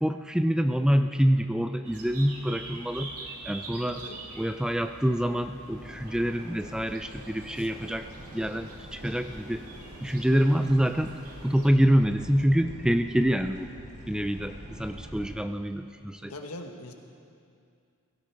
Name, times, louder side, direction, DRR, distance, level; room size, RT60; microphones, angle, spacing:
voice 1, 0.0-3.1 3.5-4.0 4.4-8.1 8.3-9.6 10.0-11.1 11.4-13.7 14.1-16.3, equal, 5° right, 8 dB, 0.3 m, -26 dB
sound 1, 1.8-11.7, right 2 dB, 90° right, 2.2 m, -45 dB
voice 2, 3.9-4.2 7.6-7.7 9.8-10.0 16.3-16.9, left 2 dB, 85° left, 4 dB, 1.4 m, -42 dB
sound 2, 5.7-15.4, equal, 35° right, 3.6 m, -46 dB
16.5 x 16.5 x 4.7 m, 2.4 s
head